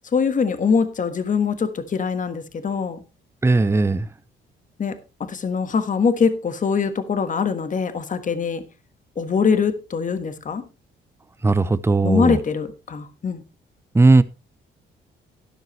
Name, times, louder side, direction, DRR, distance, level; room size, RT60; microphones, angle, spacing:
voice 1, 0.1-3.0 4.8-8.6 9.2-10.6 12.0-13.4, left 5 dB, 40° left, 1.4 m, -23 dB
voice 2, 3.4-4.1 11.4-12.4 13.9-14.2, right 3 dB, 15° right, 0.7 m, -17 dB
12.5 x 10.5 x 3.2 m
cardioid pair, 90°, 20 cm